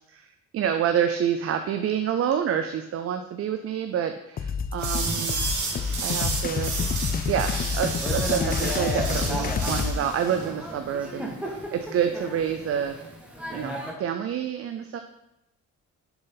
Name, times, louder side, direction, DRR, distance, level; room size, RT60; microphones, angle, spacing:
voice 1, 0.0-5.4 6.0-6.8 7.3-13.0 13.5-15.0, right 8 dB, 50° right, 7 dB, 0.5 m, -28 dB
sound 1, 4.4-10.0, left 6 dB, 30° left, 0.4 m, -28 dB
sound 2, 4.8-10.5, right 4 dB, 75° right, 1.5 m, -32 dB
Thunder / Rain, 5.0-13.9, right 1 dB, 5° right, 1.3 m, -36 dB
6.8 x 4.0 x 3.9 m, 0.87 s
cardioid pair, 90°, 30 cm